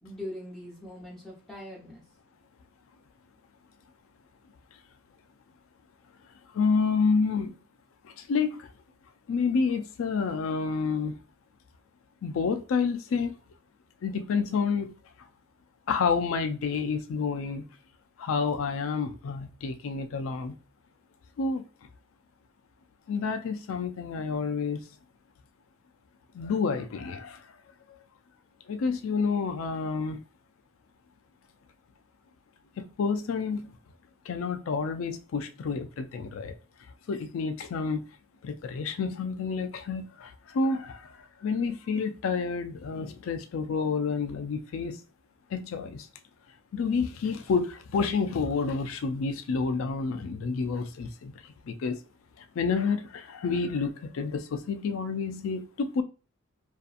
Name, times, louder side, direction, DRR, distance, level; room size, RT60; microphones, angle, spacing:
voice 1, 0.0-2.0, left 1 dB, 5° left, 1.0 m, -41 dB
voice 2, 6.5-7.5 8.0-8.7 9.3-11.2 12.2-13.3 14.0-15.0 15.9-17.6 18.2-20.6 21.4-21.7 23.1-24.8 26.3-27.4 28.7-30.2 32.8-33.8 34.3-36.5 37.1-38.0 38.4-45.0 45.5-46.1 46.7-52.0 52.4-56.0, left 5 dB, 70° left, 0.4 m, -29 dB
2.7 x 2.3 x 2.4 m
head